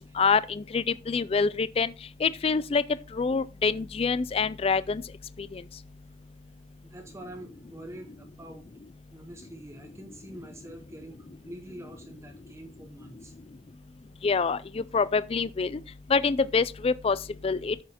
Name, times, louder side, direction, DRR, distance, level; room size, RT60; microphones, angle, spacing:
voice 1, 0.2-1.9 2.2-2.8 3.1-5.0 5.5-5.6 14.2-15.8 16.1-17.2 17.4-17.8, left 5 dB, 30° left, 0.3 m, -26 dB
voice 2, 6.8-8.7 9.1-13.3, right 1 dB, 15° right, 0.9 m, -45 dB
8.4 x 7.0 x 4.3 m
head